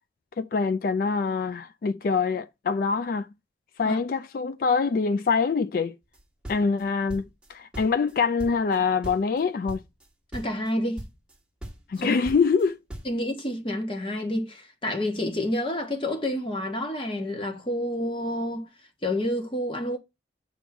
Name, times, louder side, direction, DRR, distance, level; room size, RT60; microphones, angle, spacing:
voice 1, 0.4-3.3 3.8-5.9 6.5-9.8 11.9-12.8, left 5 dB, 50° left, 0.3 m, -25 dB
sound 1, 6.1-7.5 7.7-8.8 9.0-9.4 9.7-10.1 10.3-10.7 11.0-11.4 11.6-13.2, right 1 dB, 5° right, 1.2 m, -39 dB
voice 2, 10.3-11.0 12.0-12.2 13.0-18.7 19.0-20.0, left 1 dB, 30° left, 1.4 m, -29 dB
7.1 x 3.6 x 5.9 m
head